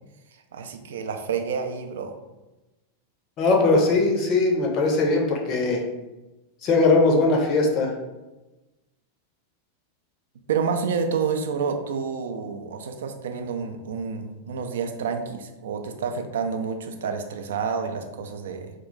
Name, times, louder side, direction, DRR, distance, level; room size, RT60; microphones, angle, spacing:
voice 1, 0.5-2.1 10.5-18.7, right 6 dB, 60° right, 6 dB, 0.3 m, -29 dB
voice 2, 3.4-5.8 6.6-7.9, left 3 dB, 35° left, 1 dB, 0.5 m, -20 dB
2.3 x 2.1 x 3.7 m, 1.1 s
figure-of-eight pair, 90°, 0 cm